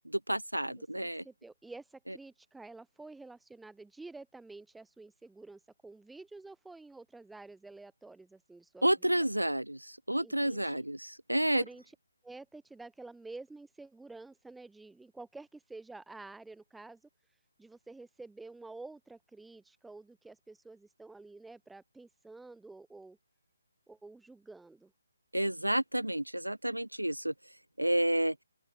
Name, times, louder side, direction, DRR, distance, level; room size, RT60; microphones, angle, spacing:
voice 1, 0.1-1.2 2.1-2.2 8.8-11.6 25.3-27.3 27.8-28.4, right 1 dB, 85° right, 0.5 m, -30 dB
voice 2, 0.7-9.1 10.2-10.8 11.5-11.9 12.2-17.1 17.6-23.2 23.9-24.9, right 3 dB, 5° right, 1.5 m, -50 dB
open air
figure-of-eight pair, 145°, 0 cm